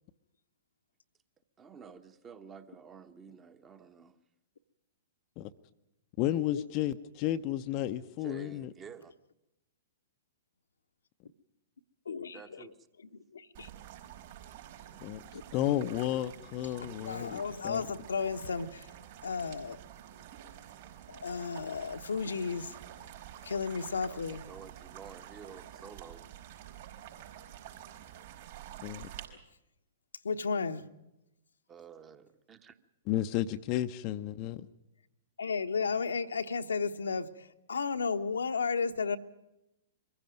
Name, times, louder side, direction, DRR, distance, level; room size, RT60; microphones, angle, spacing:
voice 1, 1.6-4.2 8.2-9.1 12.3-12.9 24.0-26.3 31.7-32.8, right 6 dB, 20° right, 9 dB, 1.3 m, -51 dB
voice 2, 6.2-8.7 15.0-15.2 15.5-17.8 28.8-29.1 33.1-34.7, left 13 dB, 35° left, 8 dB, 0.8 m, -32 dB
voice 3, 12.0-12.7 13.3-13.7 15.3-15.4 17.1-18.9 19.2-19.8 21.1-22.8 23.4-24.4 30.2-30.8 35.4-39.2, left 5 dB, 70° left, 8 dB, 1.1 m, -33 dB
sound 1, 13.5-29.3, right 11 dB, 50° right, 4.8 m, -49 dB
23.5 x 15.5 x 9.3 m, 0.91 s
figure-of-eight pair, 110°, 0 cm